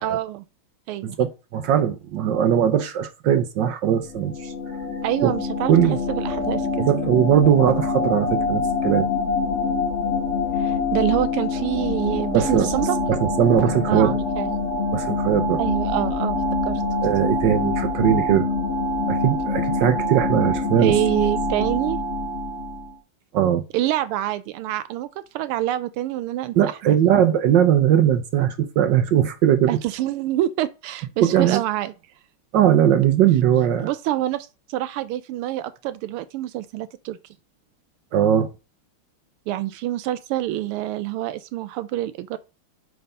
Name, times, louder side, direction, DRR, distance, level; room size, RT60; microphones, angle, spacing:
voice 1, 0.0-0.4 0.9-1.2 5.0-5.7 6.1-6.9 10.6-13.0 13.9-14.5 15.6-16.4 16.7-16.8 20.8-22.0 23.7-25.1 25.3-26.6 26.8-26.9 29.7-31.9 33.8-37.2 39.5-42.4, right 14 dB, 85° right, 1.5 m, -26 dB
voice 2, 1.0-4.5 5.2-5.3 5.7-6.0 6.8-9.1 12.3-12.7 13.1-14.2 14.9-15.6 17.0-18.5 19.1-20.9 23.3-23.6 26.5-29.8 31.2-31.6 32.5-33.9 38.1-38.5, right 10 dB, 65° right, 1.2 m, -19 dB
sound 1, 4.0-22.9, left 3 dB, 45° left, 1.1 m, -25 dB
7.8 x 3.5 x 5.4 m
omnidirectional pair, 2.4 m